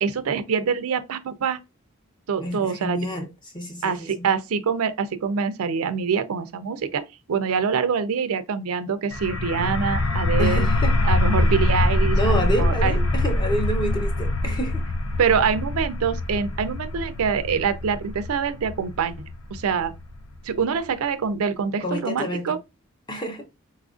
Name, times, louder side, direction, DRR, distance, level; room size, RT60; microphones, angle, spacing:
voice 1, 0.0-1.6 2.3-3.0 3.8-10.7 11.0-13.0 15.2-19.9 20.4-22.6, right 6 dB, 90° right, 0.4 m, -25 dB
voice 2, 2.4-3.3 3.5-4.3 10.4-10.9 12.1-14.8 21.8-22.6 23.1-23.5, equal, 20° left, 0.7 m, -28 dB
sound 1, 9.1-20.6, left 2 dB, 75° left, 0.5 m, -24 dB
4.2 x 2.4 x 2.4 m
head